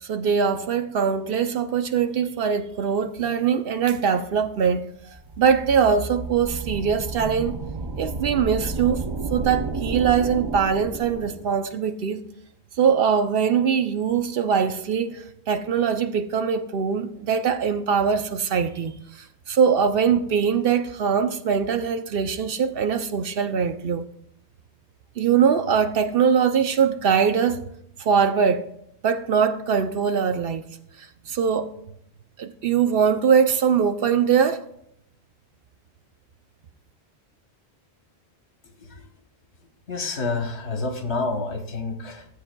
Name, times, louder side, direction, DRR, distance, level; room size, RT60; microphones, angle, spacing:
voice 1, 0.0-7.6 8.0-9.0 9.3-12.2 12.8-24.1 25.2-27.6 28.0-28.6 29.0-30.7 31.0-31.7 32.4-34.6, right 7 dB, 65° right, 0.7 m, -22 dB
sound 1, 5.1-11.6, right 3 dB, 35° right, 0.5 m, -32 dB
voice 2, 39.9-42.3, left 3 dB, 75° left, 1.5 m, -28 dB
15.5 x 8.4 x 2.2 m
omnidirectional pair, 1.1 m